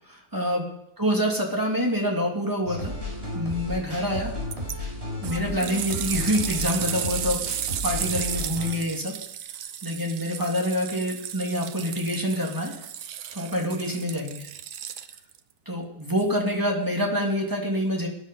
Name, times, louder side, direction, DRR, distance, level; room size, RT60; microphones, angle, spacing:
voice 1, 0.1-0.7 1.0-3.0 3.3-4.4 5.2-7.4 7.8-9.1 9.8-12.7 13.3-14.5 15.7-18.1, equal, 10° right, -1 dB, 2.8 m, -26 dB
sound 1, 2.7-8.7, left 1 dB, 35° right, 5.0 m, -33 dB
sound 2, 4.5-4.8 5.2-15.4 16.2-16.3, right 9 dB, 65° right, 1.2 m, -34 dB
19.0 x 10.0 x 5.4 m, 0.75 s
omnidirectional pair, 1.8 m